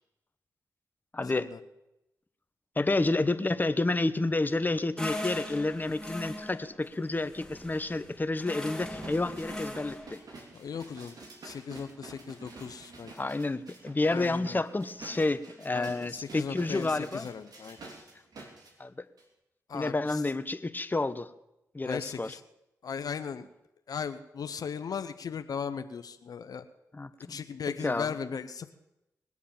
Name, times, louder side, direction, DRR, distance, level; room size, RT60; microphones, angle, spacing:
voice 1, 1.1-1.5 2.8-10.2 13.2-17.3 18.8-19.0 19.7-21.3 21.7-22.3 26.9-27.4 27.8-28.1, left 2 dB, 25° left, 12 dB, 1.1 m, -30 dB
sound 1, 5.0-10.1, left 1 dB, 10° left, 2.5 m, -40 dB
sound 2, 8.8-18.7 19.2-19.3, right 3 dB, 70° right, 3.5 m, -49 dB
voice 2, 10.5-11.2 11.4-13.1 14.1-14.6 15.7-17.8 19.7-20.2 21.8-22.4 22.8-23.5 23.9-26.6 27.3-28.7, left 6 dB, 70° left, 10 dB, 0.9 m, -37 dB
20.5 x 8.3 x 7.2 m, 0.89 s
supercardioid pair, 45°, 7 cm